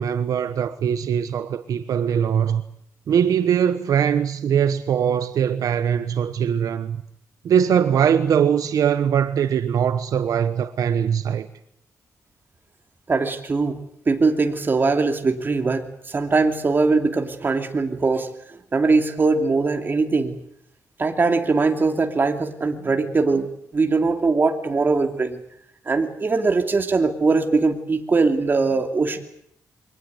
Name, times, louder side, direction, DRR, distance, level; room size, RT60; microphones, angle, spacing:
voice 1, 0.0-2.6 3.1-7.0 7.4-11.5, right 8 dB, 75° right, 1.1 m, -21 dB
voice 2, 13.1-20.4 21.0-25.4 25.9-29.2, right 3 dB, 35° right, 2.8 m, -21 dB
23.5 x 18.5 x 9.5 m
cardioid pair, 115°, 6 cm